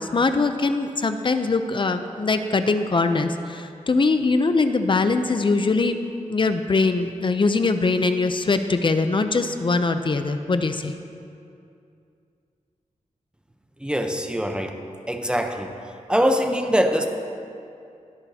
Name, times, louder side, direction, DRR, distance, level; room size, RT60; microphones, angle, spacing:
voice 1, 0.1-6.0 6.3-10.9, left 3 dB, 40° left, 8 dB, 0.5 m, -22 dB
voice 2, 13.8-14.8 15.1-15.7 16.1-17.1, equal, 5° right, 4 dB, 0.7 m, -23 dB
21.0 x 8.6 x 2.8 m, 2.5 s
wide cardioid pair, 145°, 13 cm